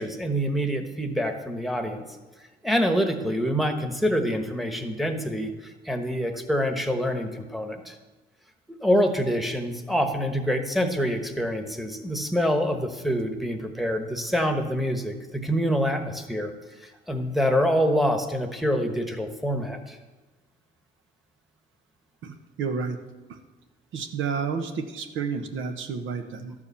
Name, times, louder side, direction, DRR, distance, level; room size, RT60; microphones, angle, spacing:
voice 1, 0.0-2.0 2.6-8.0 8.8-16.5 17.1-20.0, equal, ahead, 5 dB, 1.2 m, -26 dB
voice 2, 22.2-23.0 23.3-23.4 23.9-26.5, right 5 dB, 80° right, 7 dB, 1.0 m, -31 dB
12.0 x 4.8 x 6.9 m, 1.2 s
cardioid pair, 90°, 20 cm